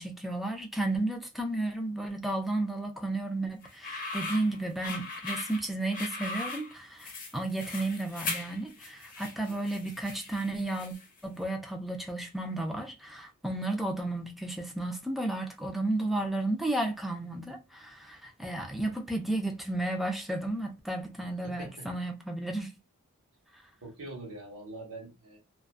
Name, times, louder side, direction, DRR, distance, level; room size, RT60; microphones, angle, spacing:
voice 1, 0.0-11.0 11.2-22.7, right 2 dB, ahead, 0.4 m, -33 dB
sound 1, 3.6-11.2, left 3 dB, 40° left, 0.8 m, -39 dB
voice 2, 21.4-21.9 23.8-25.4, right 2 dB, 65° right, 1.1 m, -44 dB
2.6 x 2.3 x 2.2 m
head